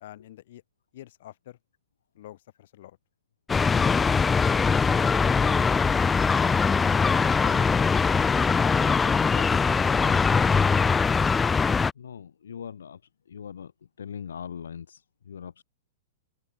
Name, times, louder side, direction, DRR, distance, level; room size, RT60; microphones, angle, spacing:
voice 1, 0.0-0.6 0.9-1.6 2.1-3.0 7.4-7.7, left 13 dB, 65° left, 1.4 m, -46 dB
sound 1, 3.5-11.9, left 5 dB, 15° left, 0.3 m, -22 dB
voice 2, 12.0-13.0 13.3-13.7 14.0-15.6, left 7 dB, 85° left, 0.7 m, -40 dB
open air
hypercardioid pair, 120°, 0 cm